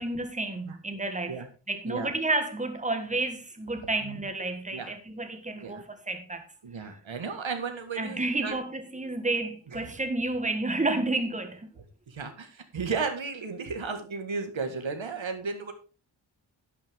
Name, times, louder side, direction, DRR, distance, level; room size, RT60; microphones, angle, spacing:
voice 1, 0.0-6.4 6.8-7.0 8.0-11.7, right 2 dB, 15° right, 1.6 m, -31 dB
voice 2, 6.6-8.6 9.7-9.8 12.1-15.7, right 4 dB, 80° right, 1.8 m, -34 dB
11.5 x 8.9 x 3.6 m
wide cardioid pair, 90°, 46 cm